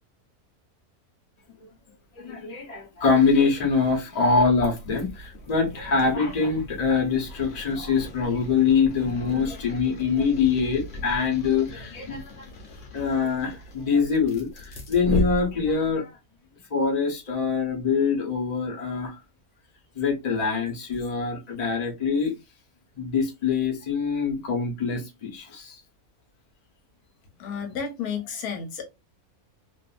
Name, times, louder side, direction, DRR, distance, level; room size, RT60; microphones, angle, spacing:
voice 1, 2.2-12.5 12.9-16.2 16.7-19.2 19.9-22.3 23.0-25.7, left 5 dB, 30° left, 0.9 m, -24 dB
sound 1, 4.4-16.0, equal, 60° left, 1.1 m, -37 dB
voice 2, 27.4-28.8, left 6 dB, 80° left, 1.2 m, -32 dB
2.6 x 2.5 x 2.4 m
omnidirectional pair, 1.6 m